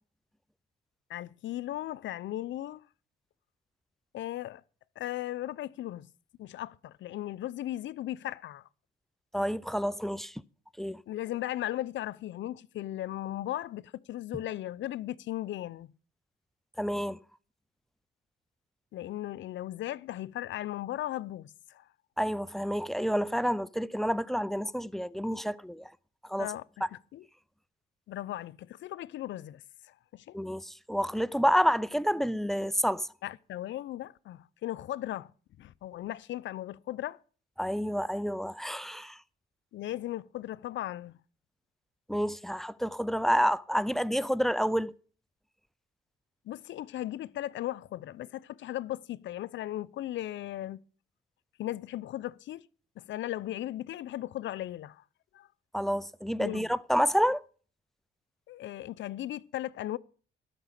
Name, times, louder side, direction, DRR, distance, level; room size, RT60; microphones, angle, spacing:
voice 1, 1.1-2.8 4.1-4.6 5.0-6.1 6.4-8.6 11.1-15.9 18.9-21.9 26.4-26.6 27.1-27.3 28.1-30.4 33.2-35.3 35.6-37.2 39.7-41.2 46.5-50.8 51.6-52.7 53.0-55.0 55.3-55.5 56.4-56.7 58.5-60.0, left 13 dB, 70° left, 0.6 m, -37 dB
voice 2, 9.3-10.3 10.8-11.0 16.8-17.2 22.2-25.8 26.3-26.5 30.3-33.1 37.6-39.2 42.1-44.9 55.7-57.4, equal, ahead, 0.5 m, -29 dB
12.5 x 6.0 x 8.2 m
cardioid pair, 90°, 20 cm